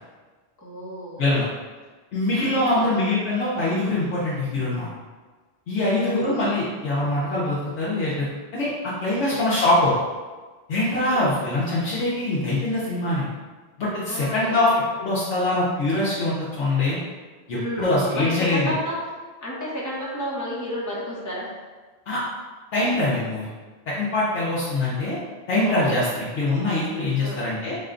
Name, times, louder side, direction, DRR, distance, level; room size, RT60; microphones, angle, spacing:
voice 1, 0.6-1.3 2.4-3.0 5.8-6.4 9.2-9.6 10.8-11.4 14.1-14.7 17.5-19.1 19.4-21.6 25.6-26.2 27.2-27.5, equal, 15° left, -6 dB, 0.8 m, -31 dB
voice 2, 2.1-4.9 5.7-8.3 8.5-9.9 10.7-13.3 13.8-14.7 15.0-17.0 17.5-18.7 22.1-22.2 22.7-23.5 23.9-25.2 25.5-27.8, left 2 dB, 70° left, -9 dB, 1.1 m, -23 dB
4.3 x 2.2 x 3.7 m, 1.4 s
omnidirectional pair, 1.2 m